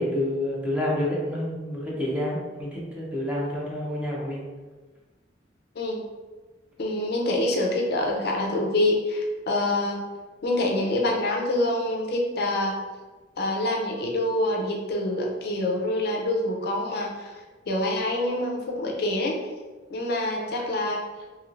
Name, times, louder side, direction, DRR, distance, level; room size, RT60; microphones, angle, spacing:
voice 1, 0.0-4.4, left 1 dB, 5° right, -5 dB, 0.6 m, -28 dB
voice 2, 6.8-10.0 10.4-12.8 13.4-17.3 17.7-19.4 19.9-21.0, left 1 dB, 55° left, 0 dB, 0.5 m, -26 dB
3.0 x 2.7 x 2.5 m, 1.3 s
head